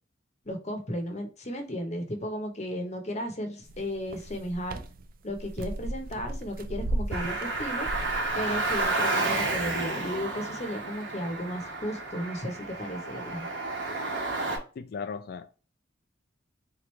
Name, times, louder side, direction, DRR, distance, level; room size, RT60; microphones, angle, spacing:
voice 1, 0.4-4.8 5.2-7.9 8.3-13.5, equal, 35° left, 0.8 m, -34 dB
sound 1, 3.6-8.9, right 1 dB, 45° right, 0.4 m, -36 dB
Car, 7.1-14.6, right 2 dB, 65° right, 1.2 m, -31 dB
voice 2, 14.8-15.6, left 5 dB, 50° left, 0.3 m, -37 dB
3.7 x 3.1 x 3.1 m
head